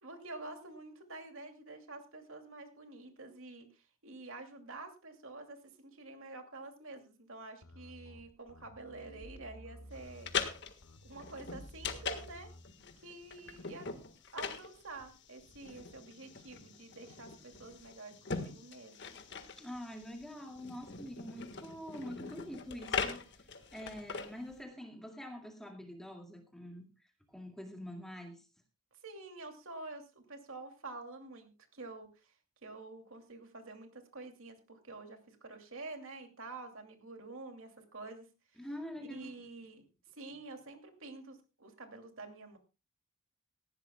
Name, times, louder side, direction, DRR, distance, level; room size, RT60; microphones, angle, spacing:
voice 1, 0.0-10.3 11.0-12.5 13.0-13.9 14.3-19.1 29.0-32.3 32.6-38.3 39.0-39.8 40.1-42.6, right 3 dB, 60° right, 5 dB, 2.7 m, -48 dB
sound 1, 7.6-12.7, equal, 75° left, 1.6 m, -53 dB
sound 2, 10.0-24.6, left 5 dB, 50° left, 1.6 m, -42 dB
voice 2, 19.6-26.9 27.3-28.5 38.6-39.4, equal, ahead, 2 dB, 2.1 m, -45 dB
19.0 x 15.0 x 2.3 m, 0.29 s
head